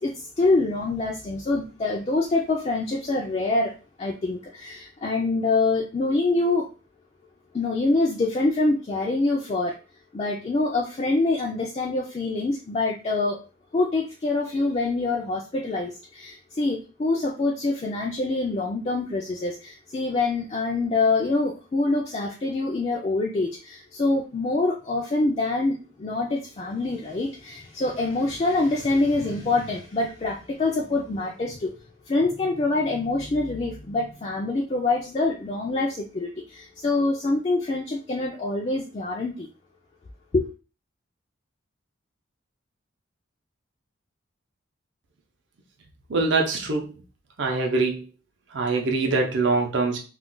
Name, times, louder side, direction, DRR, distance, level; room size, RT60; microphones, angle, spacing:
voice 1, 0.0-3.7 4.0-6.7 7.5-9.8 10.1-13.4 13.7-31.7 32.1-39.5 40.3-40.5, left 2 dB, 30° left, -1 dB, 0.3 m, -25 dB
voice 2, 46.1-46.9 47.4-48.0 48.5-50.0, right 3 dB, 65° right, 1 dB, 0.6 m, -23 dB
2.4 x 2.2 x 3.7 m, 0.34 s
head